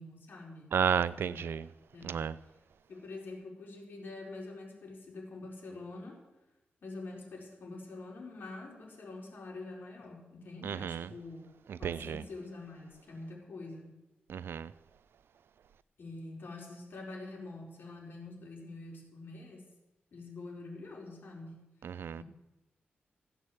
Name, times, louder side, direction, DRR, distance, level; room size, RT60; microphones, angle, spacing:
voice 1, 0.0-0.7 1.1-1.6 1.9-2.4 2.9-6.2 6.8-11.5 11.8-13.9 16.0-19.6 20.1-21.6 22.2-22.3, left 2 dB, 65° left, 4.6 m, -45 dB
voice 2, 0.7-1.6 2.0-2.3 10.6-11.1 11.7-12.2 14.3-14.7 21.8-22.2, right 7 dB, 85° right, 0.5 m, -32 dB
15.5 x 8.3 x 7.9 m
wide cardioid pair, 135°, 4 cm